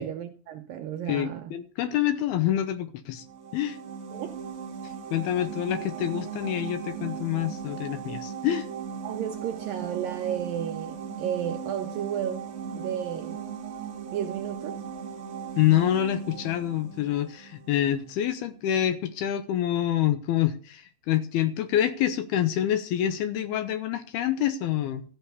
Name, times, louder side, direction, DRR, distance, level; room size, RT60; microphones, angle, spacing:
voice 1, 0.0-1.5 4.1-4.4 9.0-13.4 14.1-14.8, right 10 dB, 75° right, 2.1 m, -33 dB
voice 2, 1.1-3.2 3.5-3.8 5.1-8.7 15.6-25.0, left 11 dB, 75° left, 2.5 m, -26 dB
sound 1, 3.2-17.9, right 7 dB, 55° right, 1.9 m, -38 dB
14.0 x 6.4 x 8.2 m
omnidirectional pair, 4.9 m